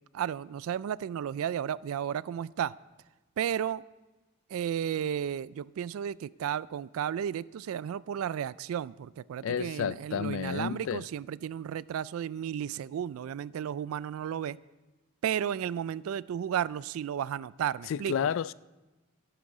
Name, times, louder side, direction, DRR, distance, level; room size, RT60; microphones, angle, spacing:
voice 1, 0.1-2.7 3.4-3.8 4.5-14.6 15.2-18.1, right 9 dB, 90° right, 0.3 m, -33 dB
voice 2, 9.4-11.0 17.9-18.5, left 7 dB, 70° left, 0.3 m, -31 dB
12.5 x 11.5 x 4.8 m
head